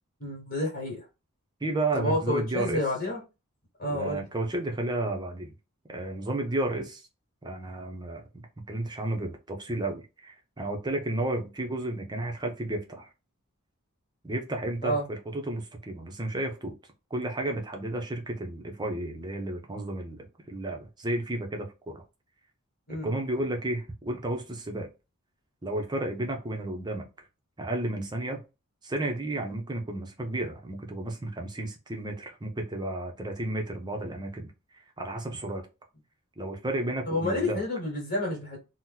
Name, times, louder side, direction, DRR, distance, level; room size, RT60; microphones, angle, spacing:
voice 1, 0.2-1.0 1.9-3.2 3.8-4.2 14.8-15.0 22.9-23.1 37.0-38.6, left 1 dB, 45° left, 1.4 m, -29 dB
voice 2, 1.6-2.8 3.9-5.5 5.9-7.1 7.4-13.1 14.2-16.8 17.1-20.2 20.5-22.0 23.0-24.9 25.6-27.0 27.6-28.4 28.8-35.6 36.4-37.6, right 1 dB, 20° right, 0.6 m, -32 dB
2.9 x 2.1 x 3.7 m
head